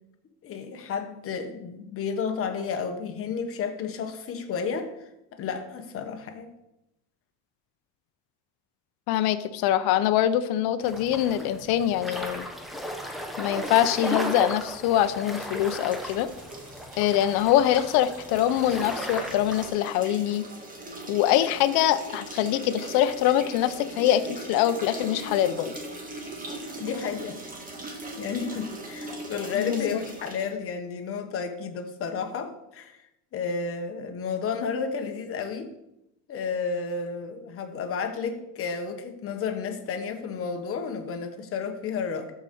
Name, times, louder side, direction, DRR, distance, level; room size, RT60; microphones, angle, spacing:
voice 1, 0.4-4.9 5.3-6.5 26.7-27.4 28.2-33.0 33.3-35.7 36.3-42.3, left 5 dB, 35° left, 6 dB, 1.1 m, -32 dB
voice 2, 9.1-12.5 13.4-16.3 17.0-20.5 21.1-25.7 29.5-30.0, left 11 dB, 65° left, 12 dB, 0.8 m, -24 dB
sound 1, 10.8-19.7, equal, ahead, 0.9 m, -35 dB
sound 2, 15.4-30.5, right 2 dB, 20° right, 1.7 m, -40 dB
13.5 x 5.2 x 4.3 m, 0.87 s
cardioid pair, 145°, 41 cm